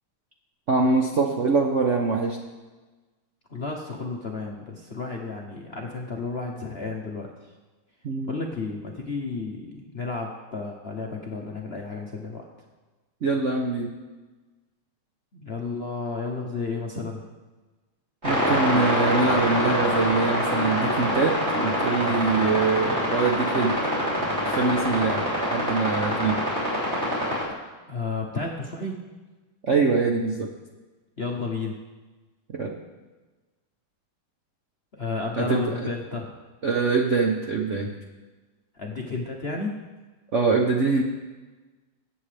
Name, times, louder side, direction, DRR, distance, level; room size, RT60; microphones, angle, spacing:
voice 1, 0.7-2.4 8.0-8.4 13.2-13.9 18.2-24.1 24.4-26.4 29.6-30.5 32.5-32.7 35.4-35.9 36.6-37.9 40.3-41.0, right 4 dB, 55° right, 1 dB, 0.8 m, -24 dB
voice 2, 3.5-7.3 8.3-12.4 15.3-17.2 27.9-29.0 31.2-31.7 34.9-36.3 38.8-39.7, left 3 dB, 45° left, 0 dB, 0.8 m, -32 dB
sound 1, 18.2-27.4, equal, 30° right, 3.7 m, -25 dB
22.0 x 8.3 x 3.4 m, 1.3 s
omnidirectional pair, 2.3 m